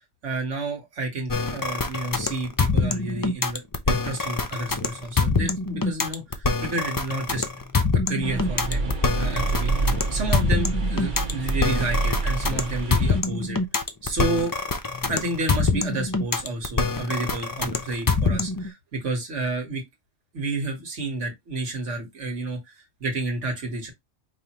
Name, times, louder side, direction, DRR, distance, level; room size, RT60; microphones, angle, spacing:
voice 1, 0.2-7.4 7.9-13.6 14.0-14.5 15.1-19.8 20.3-23.9, right 2 dB, 75° right, 1.7 m, -30 dB
sound 1, 1.3-18.7, left 4 dB, 35° left, 0.3 m, -25 dB
sound 2, 8.2-13.2, right 3 dB, 45° right, 1.0 m, -27 dB
5.1 x 2.8 x 2.9 m
omnidirectional pair, 1.2 m